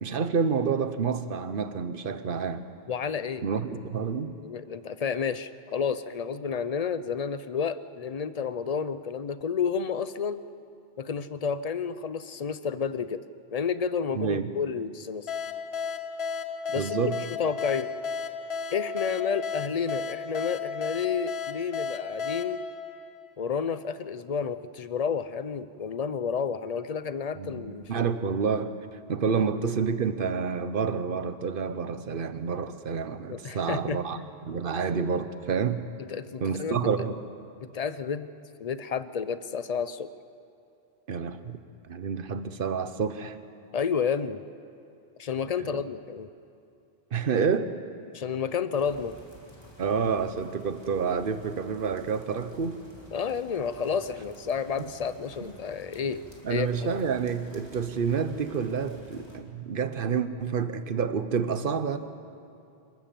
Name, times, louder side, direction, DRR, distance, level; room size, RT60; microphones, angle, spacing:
voice 1, 0.0-2.6 3.4-4.4 14.1-14.5 16.7-17.2 27.3-27.6 27.9-28.8 29.1-35.8 36.4-37.2 41.1-41.6 41.8-43.4 45.6-45.8 47.1-47.7 49.8-52.8 55.4-55.5 56.4-62.0, right 6 dB, 60° right, 11 dB, 1.1 m, -29 dB
voice 2, 2.9-3.4 4.4-10.4 11.0-13.2 13.5-15.3 16.7-17.0 17.4-17.9 18.7-22.6 23.4-28.1 33.3-34.3 36.0-36.8 37.6-38.3 38.6-40.1 43.7-44.4 45.2-46.3 48.1-49.2 53.1-57.0, left 6 dB, 45° left, 14 dB, 0.6 m, -31 dB
sound 1, 15.3-23.7, left 5 dB, 75° left, 1.1 m, -34 dB
sound 2, 48.8-59.4, equal, 25° left, 2.6 m, -51 dB
27.5 x 13.5 x 7.5 m, 2.6 s
omnidirectional pair, 1.1 m